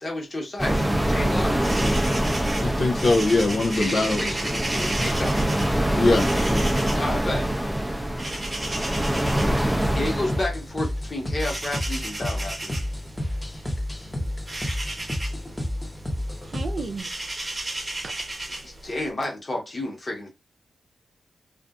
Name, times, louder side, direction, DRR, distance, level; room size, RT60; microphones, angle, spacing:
voice 1, 0.0-1.9 3.7-5.5 6.9-7.5 9.9-12.8 18.6-20.3, left 2 dB, 40° left, 1.1 m, -31 dB
sound 1, 0.6-10.4, right 1 dB, 5° right, 0.5 m, -25 dB
sound 2, 1.3-19.1, right 1 dB, 30° right, 1.0 m, -35 dB
voice 2, 2.6-4.2 4.5-4.6 6.0-6.3, left 2 dB, 70° left, 0.5 m, -21 dB
sound 3, 9.3-17.0, left 1 dB, 15° left, 0.8 m, -31 dB
voice 3, 16.4-17.1 17.7-18.1, right 4 dB, 65° right, 0.5 m, -35 dB
2.5 x 2.4 x 2.3 m
cardioid pair, 55°, 0 cm